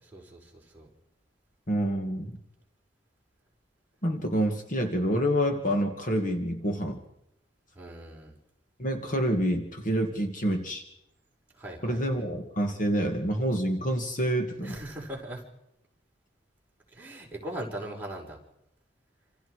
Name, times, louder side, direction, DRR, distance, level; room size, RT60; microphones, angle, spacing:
voice 1, 0.1-0.9 7.7-8.4 11.5-12.2 14.6-15.4 16.9-18.4, right 1 dB, 10° right, -2 dB, 5.0 m, -40 dB
voice 2, 1.7-2.4 4.0-7.0 8.8-10.8 11.8-14.8, equal, 40° left, 4 dB, 2.2 m, -27 dB
27.5 x 27.5 x 4.9 m, 0.83 s
head